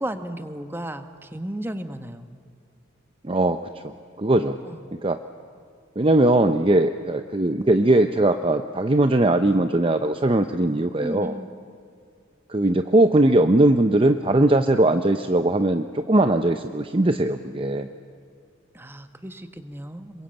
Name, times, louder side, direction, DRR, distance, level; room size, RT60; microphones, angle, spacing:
voice 1, 0.0-2.3 4.6-4.8 11.0-11.5 18.7-20.2, right 1 dB, 10° right, 9 dB, 1.2 m, -34 dB
voice 2, 3.2-4.6 5.0-5.2 6.0-11.3 12.5-17.9, right 1 dB, 25° right, 8 dB, 0.7 m, -20 dB
27.0 x 22.0 x 8.8 m, 2.3 s
head